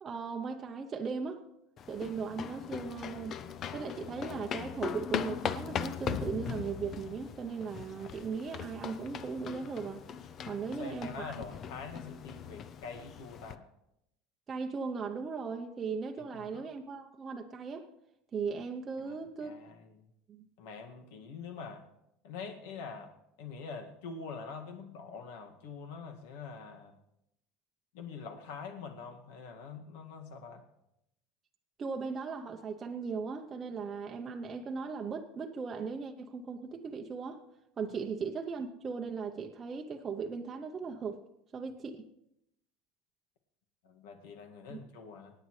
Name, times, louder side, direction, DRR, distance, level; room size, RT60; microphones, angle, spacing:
voice 1, 0.0-1.4 1.9-3.4 3.7-10.0 10.5-11.3 14.5-17.9 18.3-19.6 20.3-20.5 31.8-37.4 37.8-41.2 41.5-42.1 44.7-44.8, right 5 dB, 20° right, 3 dB, 0.7 m, -38 dB
sound 1, 1.8-13.6, left 8 dB, 30° left, 0.5 m, -40 dB
voice 2, 10.4-13.6 16.3-16.7 19.0-20.0 20.6-21.9 22.2-23.1 23.4-27.0 27.9-30.6 43.8-45.3, left 5 dB, 75° left, 4 dB, 1.9 m, -45 dB
26.0 x 9.5 x 3.2 m, 0.82 s
cardioid pair, 160°, 0 cm